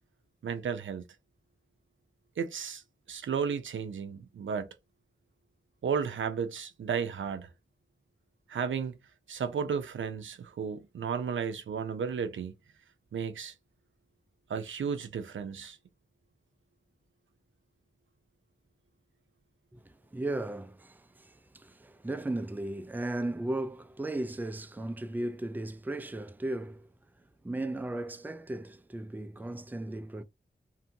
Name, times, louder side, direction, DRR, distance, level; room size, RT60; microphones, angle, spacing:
voice 1, 0.4-1.0 2.4-2.8 3.1-4.7 5.8-7.5 8.5-9.0 9.3-12.5 13.1-13.5 14.5-15.8, right 6 dB, 85° right, 0.5 m, -33 dB
voice 2, 19.7-26.9 27.4-30.2, right 2 dB, 10° right, 0.4 m, -36 dB
2.6 x 2.5 x 2.6 m
cardioid pair, 40°, 19 cm